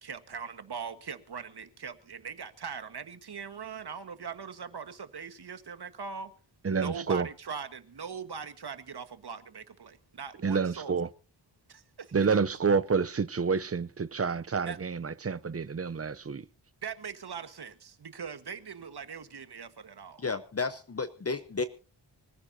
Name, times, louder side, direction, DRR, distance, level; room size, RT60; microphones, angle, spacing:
voice 1, 0.0-6.3 6.6-11.0 11.7-12.4 14.6-14.8 16.8-20.2, right 6 dB, 65° right, 1.5 m, -41 dB
voice 2, 6.6-7.3 10.4-11.1 12.1-16.5, right 5 dB, 35° right, 0.6 m, -28 dB
voice 3, 20.2-21.6, left 4 dB, 35° left, 0.9 m, -32 dB
25.0 x 15.0 x 2.8 m
wide cardioid pair, 100°, 43 cm